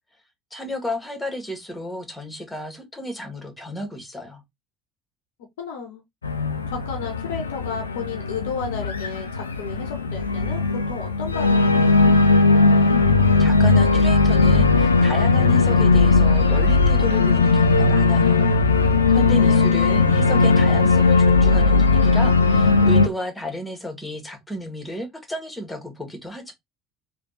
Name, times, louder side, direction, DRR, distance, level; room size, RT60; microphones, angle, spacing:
voice 1, 0.5-4.4 13.4-18.5 18.9-26.5, equal, 10° left, 1.4 m, -33 dB
voice 2, 5.6-6.0 6.7-11.9 19.4-19.7, left 6 dB, 65° left, 0.8 m, -33 dB
Organ, 6.2-23.1, left 3 dB, 80° left, 0.4 m, -18 dB
3.3 x 2.3 x 4.0 m
figure-of-eight pair, 60°, 0 cm